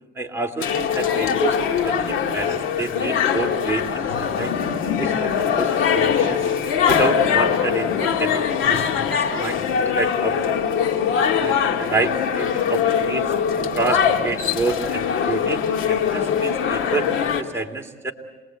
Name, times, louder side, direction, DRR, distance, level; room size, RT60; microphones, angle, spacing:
voice 1, 0.1-4.5 5.0-6.4 6.9-8.8 9.1-10.6 11.4-13.3 13.6-18.1, right 3 dB, 10° right, 1 dB, 2.9 m, -28 dB
sound 1, 0.6-17.4, left 7 dB, 85° left, 2.0 m, -22 dB
27.5 x 20.5 x 8.0 m, 1.3 s
cardioid pair, 90°, 20 cm